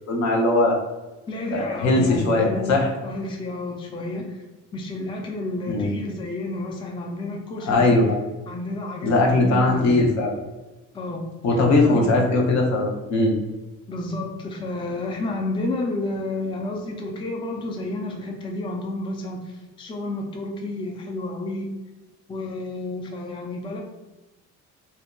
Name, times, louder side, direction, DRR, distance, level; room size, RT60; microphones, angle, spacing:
voice 1, 0.1-0.8 1.5-2.9 5.7-5.9 7.7-8.2 9.0-10.3 11.4-13.4, left 2 dB, 65° left, 0 dB, 0.7 m, -20 dB
voice 2, 1.3-2.7 3.0-4.4 4.7-7.9 8.5-10.0 10.9-11.3 11.8-12.1 13.9-21.7 22.3-23.8, left 2 dB, 15° left, 1 dB, 0.3 m, -30 dB
2.6 x 2.1 x 2.2 m, 1.1 s
cardioid pair, 90°, 30 cm